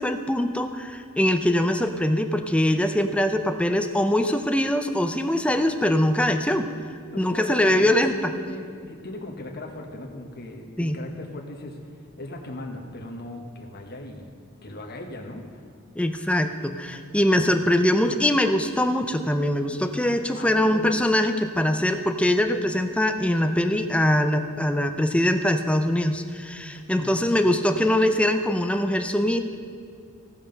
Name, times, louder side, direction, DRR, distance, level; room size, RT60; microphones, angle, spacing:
voice 1, 0.0-6.7 7.2-8.3 10.8-11.0 16.0-29.4, left 1 dB, 5° left, 7 dB, 0.5 m, -22 dB
voice 2, 7.1-11.8 12.2-14.3 14.6-15.6 17.3-17.4 20.3-20.9 27.0-27.4, left 2 dB, 50° left, 1 dB, 1.3 m, -38 dB
17.0 x 5.8 x 5.3 m, 2.3 s
head